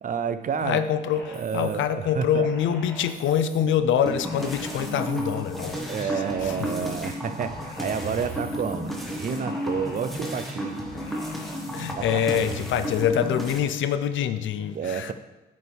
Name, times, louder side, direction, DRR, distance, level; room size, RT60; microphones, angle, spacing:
voice 1, 0.0-0.8 1.3-2.5 5.9-10.9 11.8-12.2 14.7-15.1, right 6 dB, 40° right, 12 dB, 0.5 m, -30 dB
voice 2, 0.6-5.9 6.4-6.5 11.7-15.1, left 8 dB, 75° left, 11 dB, 0.6 m, -25 dB
sound 1, 1.1-1.7 2.3-3.6 4.1-5.3 5.8-7.1 7.5-8.7 9.2-10.4 10.9-11.5, left 1 dB, 55° left, 2.3 m, -45 dB
sound 2, 4.1-13.6, equal, ahead, 1.6 m, -32 dB
8.6 x 6.5 x 3.5 m, 1.1 s
cardioid pair, 90°, 20 cm